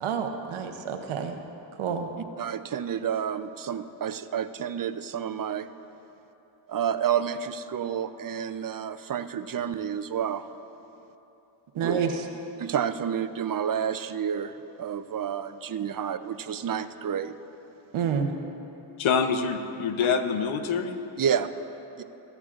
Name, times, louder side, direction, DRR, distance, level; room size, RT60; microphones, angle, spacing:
voice 1, 0.0-1.4 1.8-2.1 11.7-12.1 17.9-18.3, right 7 dB, 80° right, 6 dB, 0.9 m, -28 dB
voice 2, 2.2-5.7 6.7-10.4 11.8-12.0 12.6-17.3 21.2-21.5 22.0-22.1, right 8 dB, 45° right, 11 dB, 0.6 m, -30 dB
voice 3, 19.0-21.0, left 6 dB, 75° left, 8 dB, 0.8 m, -25 dB
21.5 x 8.1 x 2.5 m, 3.0 s
supercardioid pair, 45°, 48 cm